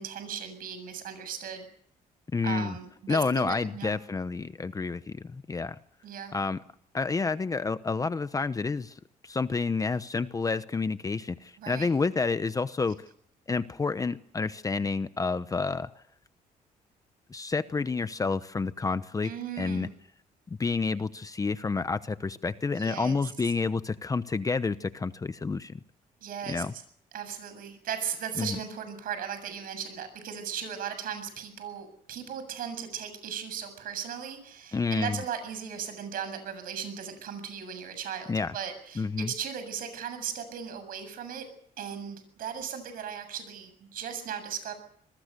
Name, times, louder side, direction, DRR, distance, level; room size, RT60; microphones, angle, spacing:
voice 1, 0.0-1.7 2.4-4.0 6.0-6.3 11.6-11.9 19.2-19.9 22.7-23.1 26.2-26.6 27.1-41.5 41.8-44.7, right 8 dB, 70° right, 10 dB, 7.5 m, -37 dB
voice 2, 2.3-2.7 3.1-5.8 6.3-6.6 6.9-12.9 13.5-15.9 17.3-19.3 19.6-19.9 20.5-25.8 26.5-26.7 28.4-28.6 34.7-35.2 38.3-38.5 39.0-39.3, left 4 dB, 25° left, 13 dB, 0.9 m, -29 dB
26.5 x 21.0 x 6.8 m, 0.66 s
cardioid pair, 110°, 15 cm